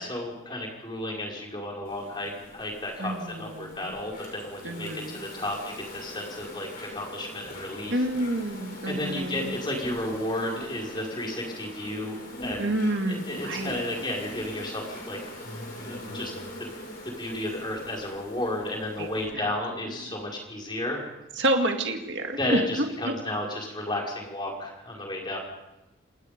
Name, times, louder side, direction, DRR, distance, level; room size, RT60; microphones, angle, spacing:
voice 1, 0.0-8.1 8.9-12.7 13.1-15.2 15.8-16.3 17.0-21.0 22.4-25.4, left 1 dB, 25° left, -1 dB, 5.4 m, -33 dB
Insect, 1.8-19.3, equal, 45° left, 7.6 m, -42 dB
voice 2, 3.0-3.9 4.6-5.2 7.9-9.6 12.6-13.8 19.0-19.1 19.3-19.5 20.0-20.1 21.4-23.1, right 1 dB, 60° right, 4 dB, 2.2 m, -29 dB
28.5 x 19.5 x 5.3 m, 0.96 s
head